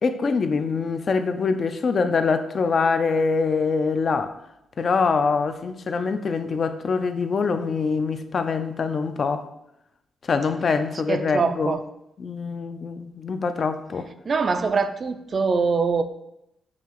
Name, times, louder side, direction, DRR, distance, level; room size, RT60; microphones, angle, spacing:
voice 1, 0.0-4.3 4.8-9.4 10.3-11.8 12.2-14.1, left 4 dB, 50° left, 9 dB, 0.3 m, -24 dB
voice 2, 11.1-11.8 14.3-16.0, right 4 dB, 45° right, 9 dB, 0.3 m, -23 dB
5.6 x 2.4 x 3.0 m, 0.82 s
cardioid pair, 75°, 0 cm